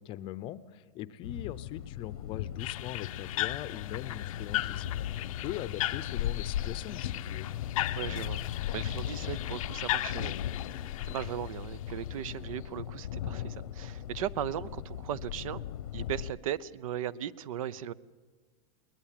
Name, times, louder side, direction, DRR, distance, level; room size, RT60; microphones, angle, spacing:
voice 1, 0.0-7.5, left 13 dB, 30° left, 15 dB, 0.6 m, -41 dB
sound 1, 1.2-16.3, left 11 dB, 85° left, 1.0 m, -38 dB
sound 2, 2.6-12.3, left 15 dB, 70° left, 0.6 m, -37 dB
sound 3, 6.0-12.2, right 6 dB, 50° right, 5.4 m, -66 dB
voice 2, 8.0-8.4 8.7-10.3 11.0-15.6 15.9-17.9, right 10 dB, 70° right, 21 dB, 0.7 m, -37 dB
21.0 x 20.0 x 7.5 m, 1.4 s
supercardioid pair, 155°, 18 cm